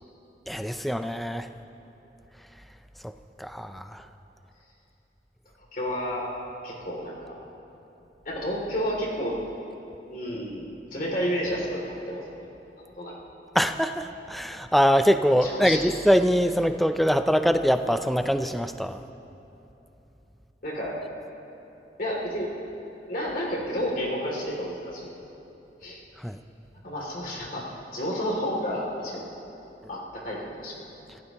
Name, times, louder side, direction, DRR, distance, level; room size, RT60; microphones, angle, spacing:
voice 1, 0.5-1.5 3.0-3.1 3.4-4.0 13.5-19.0 26.2-26.4, equal, ahead, 8 dB, 0.4 m, -23 dB
voice 2, 5.7-6.3 6.6-7.4 8.2-9.4 10.1-12.5 12.8-13.1 15.4-15.8 20.6-21.0 22.0-22.5 23.1-25.1 25.8-26.0 26.8-29.3 29.9-30.8, equal, 50° left, -3 dB, 2.7 m, -31 dB
26.0 x 16.0 x 3.0 m, 3.0 s
head